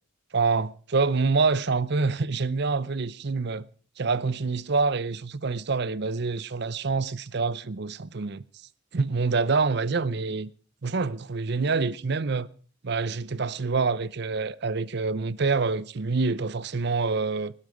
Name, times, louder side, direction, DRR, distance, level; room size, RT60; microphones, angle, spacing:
voice 1, 0.3-3.7 4.0-8.4 8.9-10.5 10.8-12.5 12.8-17.5, right 4 dB, 55° right, 0.7 m, -26 dB
20.5 x 12.5 x 5.1 m
head